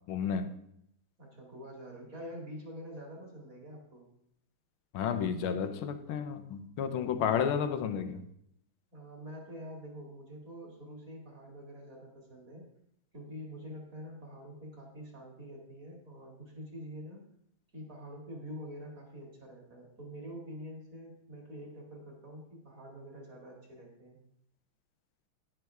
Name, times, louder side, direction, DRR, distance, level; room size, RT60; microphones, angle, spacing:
voice 1, 0.1-0.5 4.9-8.2, left 7 dB, 80° left, 9 dB, 1.6 m, -32 dB
voice 2, 1.2-4.1 8.9-12.7 13.1-17.2 17.7-24.2, equal, 40° right, 0 dB, 2.8 m, -46 dB
10.5 x 9.9 x 3.5 m, 0.73 s
omnidirectional pair, 2.3 m